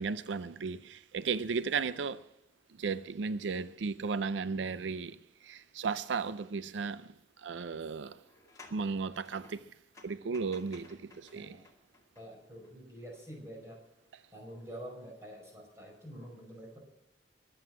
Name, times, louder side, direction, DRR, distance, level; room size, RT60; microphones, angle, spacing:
voice 1, 0.0-2.3 2.8-8.2 8.7-9.7 10.0-11.6 14.1-14.2, right 5 dB, 80° right, 0.5 m, -35 dB
sound 1, 6.2-6.3 6.8-6.9 8.2-12.7 13.1-13.2, left 3 dB, 15° left, 2.2 m, -58 dB
voice 2, 12.1-13.8 14.3-16.8, equal, 15° right, 5.1 m, -47 dB
22.5 x 7.9 x 6.1 m
head